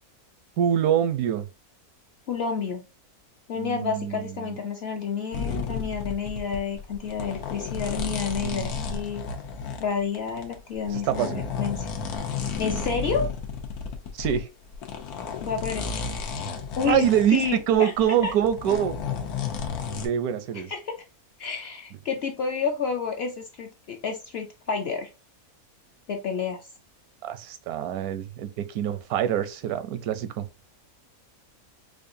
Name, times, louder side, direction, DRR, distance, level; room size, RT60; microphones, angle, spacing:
voice 1, 0.6-1.5 3.5-4.6 8.4-8.9 10.9-11.5 14.1-14.5 16.8-18.9 20.0-20.7 27.2-30.5, right 10 dB, 80° right, 1.0 m, -25 dB
voice 2, 2.3-2.8 3.5-9.2 9.8-11.3 11.6-11.9 12.6-13.3 15.4-15.9 16.8-17.9 18.2-18.3 20.7-20.9 21.4-25.1 26.1-26.6, left 6 dB, 60° left, 0.7 m, -29 dB
sound 1, 5.3-14.4 14.7-20.1, left 5 dB, 90° left, 1.3 m, -32 dB
4.7 x 2.5 x 2.5 m
omnidirectional pair, 1.6 m